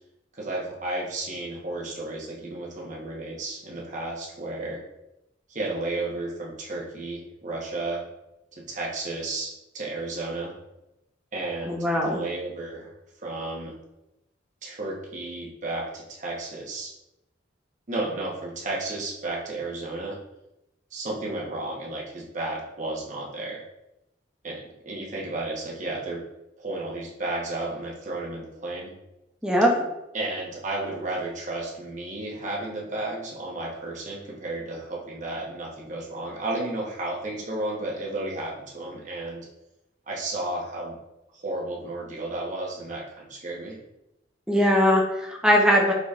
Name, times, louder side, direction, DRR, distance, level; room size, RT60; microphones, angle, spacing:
voice 1, 0.3-4.8 5.5-8.0 8.5-10.5 11.3-12.9 13.2-13.8 14.6-16.9 17.9-20.2 20.9-23.6 24.4-26.2 26.6-28.9 30.1-39.5 40.1-41.0 41.3-43.8, right 2 dB, 40° right, -3 dB, 1.0 m, -33 dB
voice 2, 11.7-12.2 29.4-29.8 44.5-45.9, equal, 5° right, -1 dB, 0.7 m, -20 dB
4.9 x 4.0 x 2.4 m, 0.90 s
head